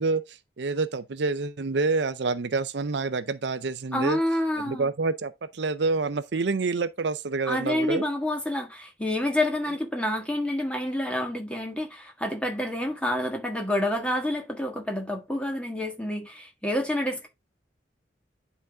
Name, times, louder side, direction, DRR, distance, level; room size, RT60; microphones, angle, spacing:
voice 1, 0.0-4.2 4.6-8.0, right 3 dB, 65° right, 0.6 m, -27 dB
voice 2, 3.9-4.9 7.5-17.3, left 1 dB, 5° left, 1.6 m, -28 dB
10.5 x 4.1 x 3.4 m
head